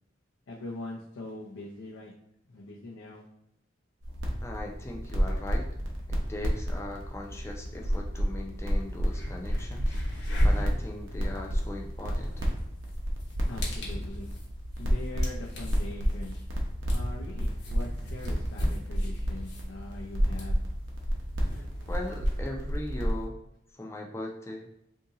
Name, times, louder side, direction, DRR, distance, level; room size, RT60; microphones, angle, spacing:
voice 1, 0.5-2.1 2.4-3.3 13.5-14.3 14.8-16.3 16.9-20.6, left 2 dB, 85° left, -3 dB, 0.6 m, -42 dB
sound 1, 4.0-23.3, equal, 75° right, 0.7 m, -31 dB
voice 2, 4.4-5.7 6.1-9.9 10.4-12.4 21.9-23.4 23.7-24.7, left 1 dB, 15° left, 0 dB, 0.4 m, -39 dB
sound 2, 8.6-8.7 9.0-22.4, equal, 60° left, 1.0 m, -35 dB
2.8 x 2.7 x 3.7 m, 0.80 s
head